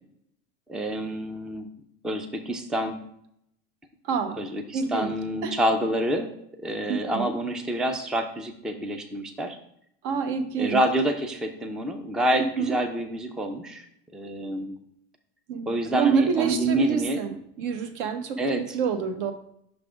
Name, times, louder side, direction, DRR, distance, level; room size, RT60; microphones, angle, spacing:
voice 1, 0.7-1.7 2.0-3.0 4.4-6.3 6.6-9.6 10.6-13.9 14.1-14.8 15.7-17.2 18.4-18.6, right 1 dB, ahead, 6 dB, 0.3 m, -27 dB
voice 2, 4.0-4.4 4.7-5.1 5.4-5.6 6.9-7.3 10.0-10.8 12.4-12.8 15.5-19.3, right 5 dB, 60° right, 8 dB, 1.0 m, -27 dB
6.1 x 3.3 x 4.9 m, 0.71 s
supercardioid pair, 130°, 31 cm